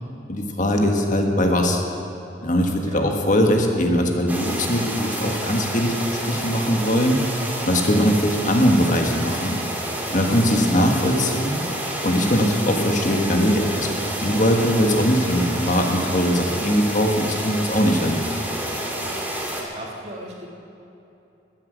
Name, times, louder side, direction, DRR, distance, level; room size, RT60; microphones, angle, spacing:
voice 1, 0.3-1.8 2.4-6.0 6.3-7.2 7.6-9.6 10.1-11.6 12.0-18.2, equal, 40° left, 2 dB, 1.4 m, -20 dB
sound 1, 4.3-19.6, right 1 dB, 10° right, 1.7 m, -29 dB
voice 2, 19.0-20.5, right 1 dB, 35° right, -2 dB, 1.6 m, -38 dB
13.5 x 10.0 x 8.0 m, 2.9 s
head